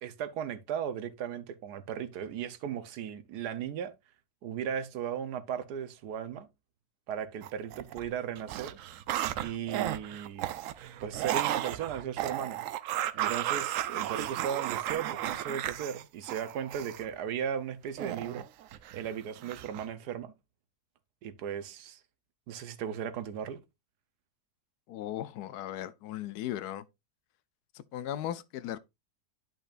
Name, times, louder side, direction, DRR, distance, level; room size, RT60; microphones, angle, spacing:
voice 1, 0.0-3.9 4.4-6.5 7.1-8.8 9.4-10.5 11.0-12.7 13.1-18.5 18.9-20.3 21.2-22.0 22.5-23.6, right 8 dB, 85° right, 1.4 m, -36 dB
sound 1, 7.4-8.1 8.4-17.1 18.0-19.1 19.4-19.9, right 12 dB, 70° right, 0.8 m, -34 dB
voice 2, 24.9-26.9 27.7-28.8, left 12 dB, 80° left, 1.1 m, -37 dB
10.5 x 5.6 x 2.5 m
omnidirectional pair, 1.7 m